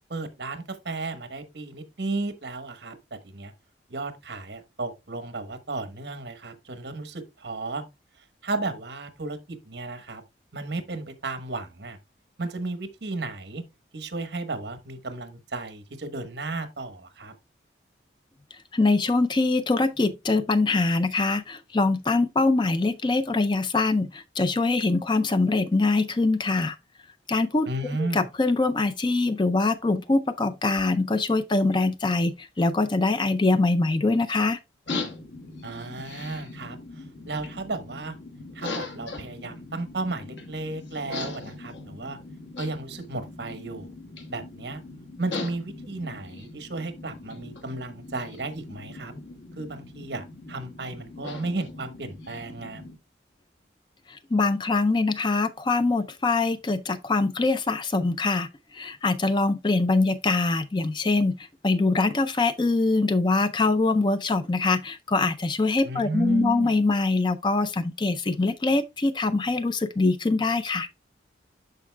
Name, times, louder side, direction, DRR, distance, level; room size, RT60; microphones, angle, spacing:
voice 1, 0.1-2.9 3.2-3.5 3.9-7.8 8.4-10.2 10.5-12.0 12.4-13.6 13.9-17.3 27.7-28.3 35.6-38.1 38.5-42.2 42.6-43.9 44.3-44.8 45.2-49.1 49.6-52.8 65.8-66.7, right 2 dB, 65° right, 1.2 m, -34 dB
voice 2, 18.7-26.8 27.3-27.7 28.0-34.6 54.3-58.5 58.7-61.4 61.6-70.9, left 3 dB, 25° left, 0.4 m, -23 dB
sound 1, 34.9-53.0, left 3 dB, 80° left, 1.3 m, -40 dB
12.5 x 4.6 x 2.2 m
head